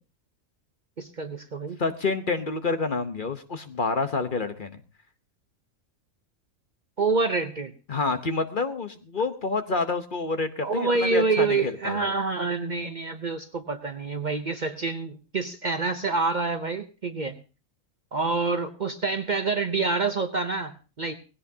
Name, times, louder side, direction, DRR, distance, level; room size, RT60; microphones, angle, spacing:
voice 1, 1.0-1.8 7.0-7.7 10.6-17.4 18.1-21.2, right 3 dB, 40° right, 8 dB, 0.7 m, -27 dB
voice 2, 1.8-4.8 7.9-12.1, left 3 dB, 40° left, 9 dB, 1.0 m, -28 dB
18.5 x 16.5 x 2.8 m, 0.34 s
omnidirectional pair, 1.4 m